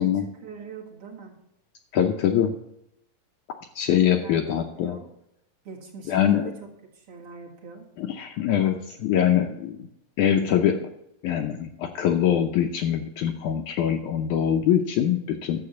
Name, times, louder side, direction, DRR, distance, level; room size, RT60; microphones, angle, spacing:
voice 1, 0.0-1.3 4.0-5.1 5.6-6.5 6.9-7.9, right 5 dB, 45° right, -3 dB, 2.4 m, -42 dB
voice 2, 1.9-2.5 3.8-5.0 6.1-6.5 8.0-9.8 10.2-10.9 11.2-15.6, left 9 dB, 75° left, 4 dB, 1.9 m, -23 dB
11.5 x 7.5 x 7.0 m, 0.81 s
omnidirectional pair, 4.1 m